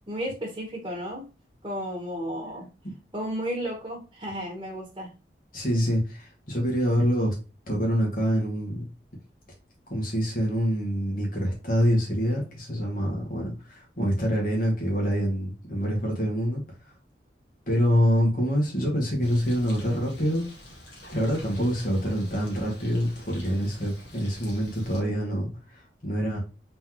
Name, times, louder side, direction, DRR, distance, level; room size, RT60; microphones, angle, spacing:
voice 1, 0.1-1.3 1.6-2.7 3.1-5.1, equal, 20° right, -2 dB, 1.3 m, -33 dB
voice 2, 5.5-7.3 7.7-8.8 9.9-16.6 17.7-20.5 21.1-26.4, equal, 50° left, -2 dB, 2.0 m, -26 dB
Bird, 19.2-25.0, left 1 dB, 85° left, 1.8 m, -46 dB
4.1 x 3.9 x 3.1 m, 0.31 s
head